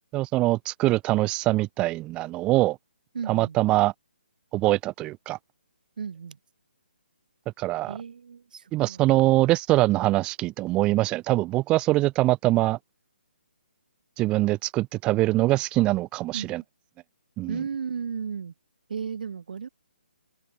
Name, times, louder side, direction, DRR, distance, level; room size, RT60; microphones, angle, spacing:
voice 1, 0.1-2.8 3.3-3.9 4.5-5.4 7.6-7.9 8.7-12.8 14.2-16.6 17.4-17.6, right 18 dB, 15° right, 1.6 m, -23 dB
voice 2, 3.1-3.6 6.0-6.4 7.8-9.0 16.3-16.6 17.5-18.5 18.9-19.7, right 6 dB, 50° right, 4.1 m, -34 dB
figure-of-eight pair, 140°, 6 cm